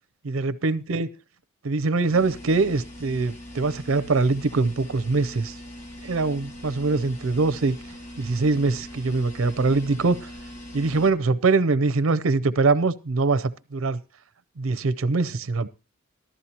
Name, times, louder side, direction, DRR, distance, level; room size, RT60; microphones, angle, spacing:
voice 1, 0.3-1.1 1.6-5.5 6.0-7.8 8.2-10.3 10.7-14.0 14.6-15.7, right 3 dB, 90° right, 0.6 m, -23 dB
sound 1, 2.1-11.1, left 1 dB, 35° left, 1.8 m, -41 dB
14.5 x 12.5 x 2.9 m
head